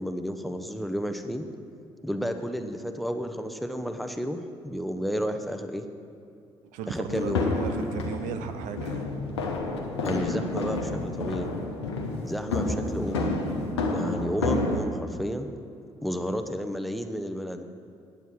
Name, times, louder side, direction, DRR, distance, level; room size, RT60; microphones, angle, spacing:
voice 1, 0.0-1.5 2.0-5.8 6.9-7.4 10.0-11.5 12.2-13.3 13.9-15.5 16.0-17.6, equal, ahead, 7 dB, 0.8 m, -31 dB
voice 2, 6.7-9.1, right 8 dB, 70° right, 8 dB, 0.5 m, -36 dB
sound 1, 7.1-14.8, left 2 dB, 85° left, 0.8 m, -29 dB
9.3 x 7.4 x 6.1 m, 2.5 s
figure-of-eight pair, 45°, 14 cm